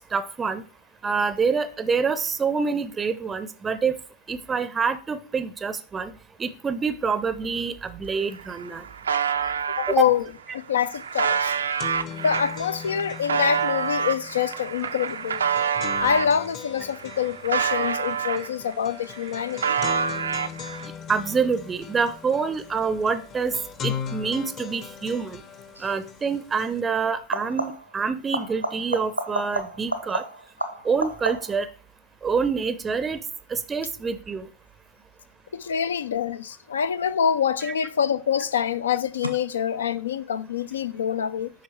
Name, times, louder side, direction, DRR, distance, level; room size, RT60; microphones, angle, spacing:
voice 1, 0.1-0.6 1.0-4.0 4.3-6.1 6.4-8.8 9.9-10.1 14.8-14.9 21.1-23.6 23.8-25.4 25.8-30.2 30.8-31.7 32.2-33.2 33.5-34.5 37.6-37.7, right 5 dB, 15° right, 0.6 m, -26 dB
sound 1, 8.0-8.1 8.4-9.9 10.6-16.3 16.8-18.7 19.0-20.9, right 7 dB, 70° right, 0.5 m, -27 dB
voice 2, 9.8-10.2 10.5-11.5 12.2-15.4 16.0-19.8 35.5-41.5, left 8 dB, 65° left, 0.5 m, -25 dB
sound 2, 10.9-11.0 11.3-26.8, left 8 dB, 35° left, 0.8 m, -39 dB
sound 3, 25.7-26.0 27.2-28.0 28.3-31.7 37.1-37.7 39.2-39.3, right 1 dB, 90° right, 1.0 m, -31 dB
8.9 x 5.8 x 3.2 m
figure-of-eight pair, 90°, 0 cm